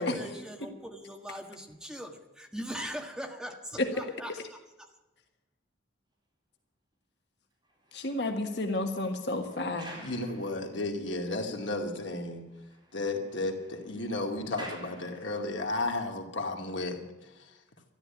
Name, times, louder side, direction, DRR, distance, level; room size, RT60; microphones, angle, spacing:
voice 1, 0.0-4.9, equal, 5° right, 2 dB, 1.5 m, -41 dB
sound 1, 7.6-11.3 11.6-11.7 12.1-12.2 12.5-15.7 16.4-16.6, right 1 dB, 25° right, 4.2 m, -51 dB
voice 2, 7.9-9.9, left 2 dB, 60° left, 4 dB, 1.4 m, -31 dB
voice 3, 10.0-12.4 12.9-17.0, left 2 dB, 80° left, 2 dB, 2.4 m, -33 dB
13.5 x 12.0 x 8.7 m, 1.0 s
head